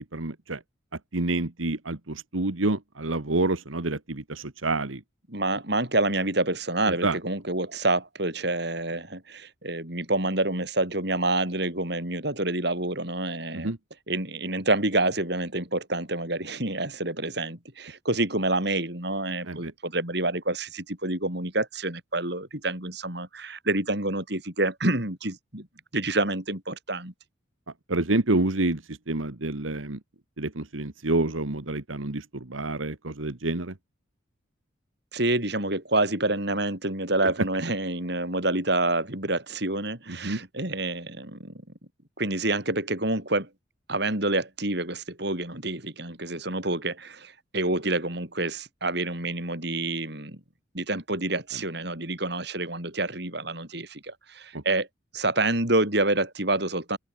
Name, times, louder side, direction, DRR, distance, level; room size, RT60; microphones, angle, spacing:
voice 1, 0.1-0.6 1.1-5.0 6.9-7.2 13.5-13.8 19.5-19.7 27.9-30.0 30.4-33.7 40.1-40.4, right 2 dB, 90° right, 1.8 m, -28 dB
voice 2, 5.3-13.7 14.1-25.7 25.9-27.1 35.1-41.5 42.2-43.5 43.9-50.4 50.7-54.9 55.1-57.0, right 2 dB, 55° right, 5.7 m, -28 dB
open air
head